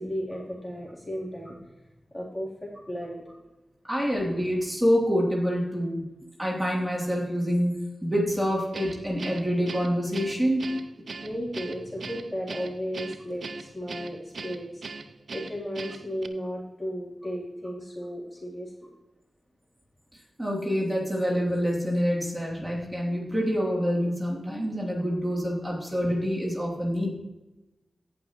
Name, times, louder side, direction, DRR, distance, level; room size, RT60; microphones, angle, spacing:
voice 1, 0.0-1.7 2.1-3.2 11.2-14.8 15.3-18.9, equal, 20° left, -5 dB, 3.5 m, -35 dB
voice 2, 3.9-6.1 6.4-10.7 20.4-27.1, equal, 10° right, -4 dB, 3.2 m, -26 dB
Guitar, 8.7-16.3, right 4 dB, 70° right, 0.6 m, -40 dB
17.5 x 6.0 x 3.1 m, 1.0 s
cardioid pair, 45°, 0 cm